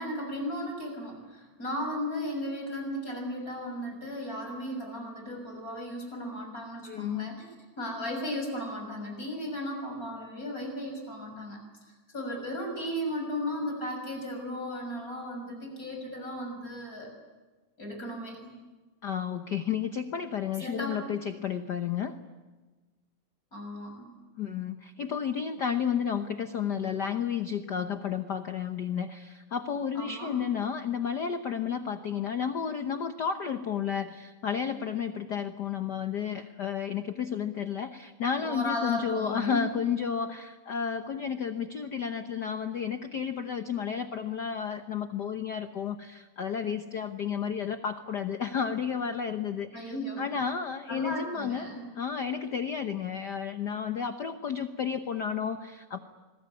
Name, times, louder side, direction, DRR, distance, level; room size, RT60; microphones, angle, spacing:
voice 1, 0.0-7.5 7.8-11.6 12.1-17.1 17.8-18.5 20.6-21.2 23.5-24.1 29.9-30.4 38.3-39.7 49.7-50.3 50.9-51.9, equal, 30° left, 3 dB, 6.8 m, -35 dB
voice 2, 6.8-7.3 19.0-22.2 24.4-51.7 52.0-56.0, left 7 dB, 70° left, 8 dB, 0.9 m, -32 dB
26.5 x 21.5 x 9.7 m, 1.2 s
omnidirectional pair, 3.3 m